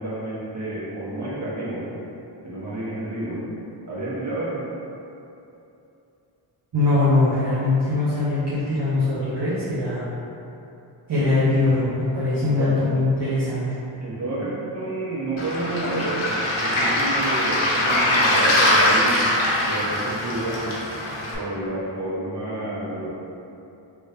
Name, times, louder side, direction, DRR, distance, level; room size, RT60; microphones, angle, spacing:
voice 1, 0.0-1.9 2.4-3.5 3.9-4.6 11.1-11.3 12.4-12.8 13.2-13.3 14.0-19.3 19.6-20.6 21.3-23.1, right 2 dB, 35° right, -9 dB, 1.4 m, -29 dB
voice 2, 6.7-10.0 11.1-13.6, left 2 dB, 55° right, -11 dB, 0.9 m, -21 dB
Waves surf, 15.4-21.4, left 1 dB, 80° left, 0.9 m, -22 dB
3.5 x 3.0 x 2.8 m, 2.9 s
cardioid pair, 55°, 49 cm